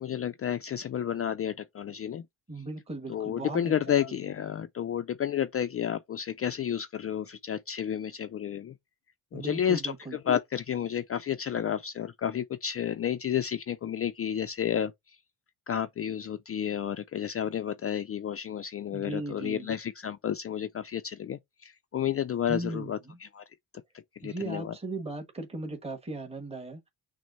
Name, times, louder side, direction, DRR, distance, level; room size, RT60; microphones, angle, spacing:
voice 1, 0.0-2.2 3.1-8.7 9.3-15.2 15.7-23.4 24.2-24.8, left 9 dB, 35° left, 0.4 m, -31 dB
voice 2, 2.5-3.7 4.1-4.2 9.3-10.2 18.9-19.7 22.5-23.2 24.2-26.8, right 2 dB, 15° right, 1.3 m, -37 dB
6.1 x 2.1 x 4.0 m
cardioid pair, 85°, 43 cm